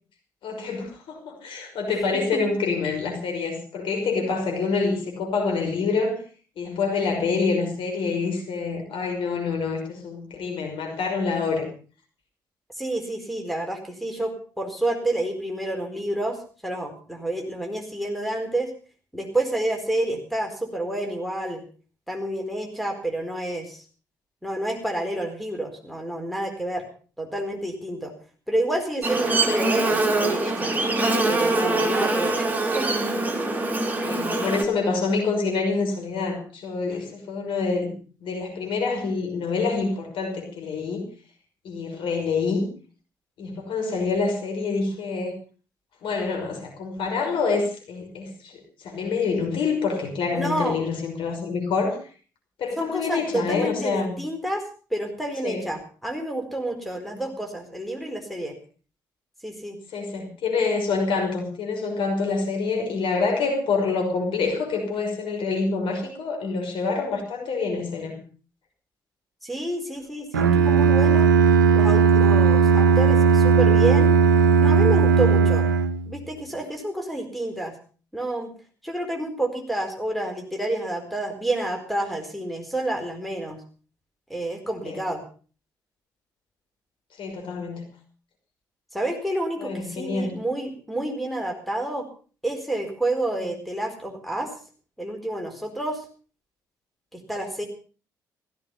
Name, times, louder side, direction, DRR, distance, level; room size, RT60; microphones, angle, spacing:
voice 1, 0.4-6.2 6.6-11.7 34.0-41.1 41.6-42.7 43.4-45.3 46.0-52.0 52.6-54.2 55.4-55.6 57.1-57.2 59.9-68.2 84.9-85.0 87.2-87.9 89.6-90.4, left 4 dB, 55° left, 3 dB, 5.7 m, -26 dB
voice 2, 1.9-2.4 12.8-18.7 19.1-21.6 22.1-23.8 24.4-26.8 27.2-28.1 28.5-30.7 31.3-33.0 50.3-50.8 52.8-54.7 54.9-58.6 59.4-59.8 69.4-71.3 71.7-74.2 74.6-75.7 76.1-77.7 78.1-78.5 78.8-83.6 84.3-85.2 88.9-92.1 92.4-94.5 95.0-96.0 97.1-97.7, right 1 dB, ahead, 5 dB, 4.4 m, -29 dB
Buzz, 29.0-34.6, right 2 dB, 15° right, 4.0 m, -23 dB
Bowed string instrument, 70.3-76.2, right 5 dB, 80° right, 0.8 m, -17 dB
16.0 x 15.0 x 5.6 m, 0.40 s
figure-of-eight pair, 45°, 10 cm